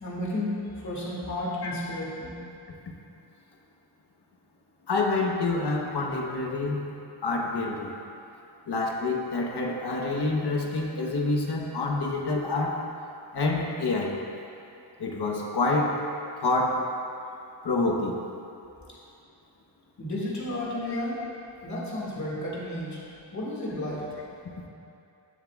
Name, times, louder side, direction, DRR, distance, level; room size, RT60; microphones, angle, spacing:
voice 1, 0.0-2.3 20.0-21.2 21.6-23.0 23.3-24.0, left 1 dB, 40° left, -6 dB, 2.2 m, -32 dB
voice 2, 4.9-6.9 7.2-7.9 8.7-12.8 13.3-14.2 15.0-16.0 16.4-16.9 17.6-18.2 20.9-21.0, left 3 dB, 60° left, 0 dB, 1.3 m, -27 dB
18.0 x 7.3 x 2.5 m, 2.7 s
wide cardioid pair, 145°, 44 cm